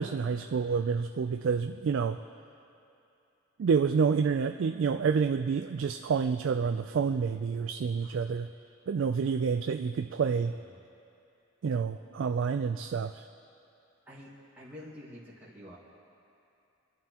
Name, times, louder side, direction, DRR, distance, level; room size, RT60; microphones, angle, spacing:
voice 1, 0.0-2.2 3.6-8.5 8.9-10.5 11.6-13.2, right 5 dB, 60° right, 8 dB, 0.3 m, -28 dB
voice 2, 10.2-10.8 14.0-15.8, left 1 dB, 10° right, -10 dB, 1.8 m, -49 dB
25.5 x 11.0 x 2.9 m, 2.7 s
head